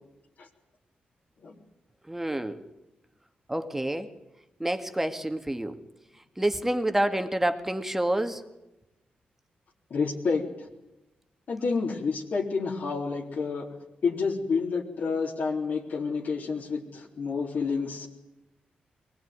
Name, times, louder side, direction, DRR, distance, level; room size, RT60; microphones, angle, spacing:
voice 1, 2.1-2.6 3.5-4.1 4.6-5.8 6.4-8.4, right 1 dB, 10° right, 8 dB, 2.0 m, -28 dB
voice 2, 9.9-10.7 11.5-13.7 14.0-18.1, left 4 dB, 65° left, -2 dB, 3.8 m, -29 dB
23.0 x 19.5 x 9.6 m, 0.95 s
cardioid pair, 90°, 3 cm